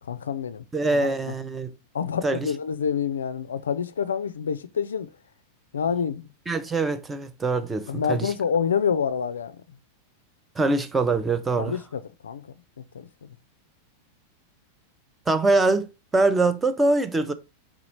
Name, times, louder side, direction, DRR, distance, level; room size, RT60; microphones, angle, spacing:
voice 1, 0.0-1.3 1.9-5.1 5.7-6.3 7.9-9.6 11.6-12.5 12.9-13.3, left 7 dB, 70° left, 0.3 m, -28 dB
voice 2, 0.7-1.7 2.2-2.5 6.5-8.3 10.6-11.7 15.3-17.3, right 3 dB, 15° right, 0.5 m, -23 dB
4.9 x 3.6 x 2.9 m
figure-of-eight pair, 90°, 0 cm